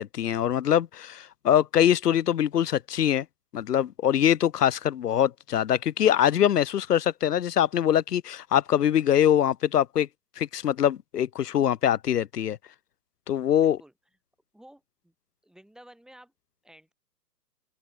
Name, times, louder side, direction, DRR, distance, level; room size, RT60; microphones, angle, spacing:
voice 1, 0.0-3.3 3.5-10.1 10.4-12.6 13.3-13.8, left 10 dB, 75° left, 0.6 m, -23 dB
voice 2, 13.6-13.9 14.5-15.1 15.4-16.3 16.6-16.9, right 1 dB, ahead, 6.5 m, -53 dB
open air
figure-of-eight pair, 120°, 48 cm